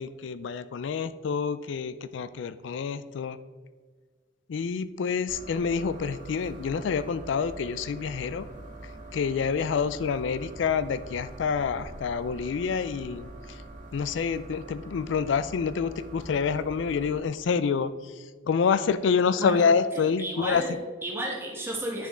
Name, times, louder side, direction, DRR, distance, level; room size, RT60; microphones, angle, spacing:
voice 1, 0.0-3.4 4.5-8.5 9.1-13.3 13.9-17.9 18.5-20.6, left 6 dB, 70° left, 14 dB, 0.3 m, -27 dB
sound 1, 5.3-17.2, right 2 dB, 40° right, 1.7 m, -44 dB
voice 2, 19.4-22.1, right 1 dB, 10° right, -1 dB, 1.4 m, -34 dB
9.8 x 6.9 x 3.6 m, 1.5 s
head